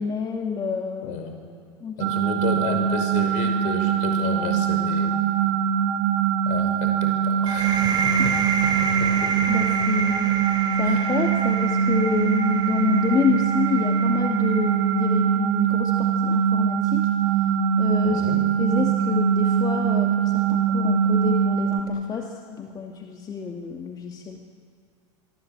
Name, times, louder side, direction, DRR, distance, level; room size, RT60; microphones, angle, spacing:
voice 1, 0.0-1.2 1.8-2.2 8.2-8.3 9.5-10.3 10.8-17.1 17.8-18.3 18.6-24.4, left 6 dB, 25° left, 2 dB, 2.1 m, -28 dB
voice 2, 1.0-1.3 2.0-5.1 6.5-8.3 8.8-9.5 10.8-11.1 18.0-18.4, left 5 dB, 55° left, 5 dB, 5.8 m, -32 dB
sound 1, 2.0-21.8, right 8 dB, 65° right, 2.4 m, -22 dB
sound 2, 7.5-15.0, right 5 dB, 30° right, 3.9 m, -29 dB
24.0 x 24.0 x 8.6 m, 2.2 s
hypercardioid pair, 90°, 15 cm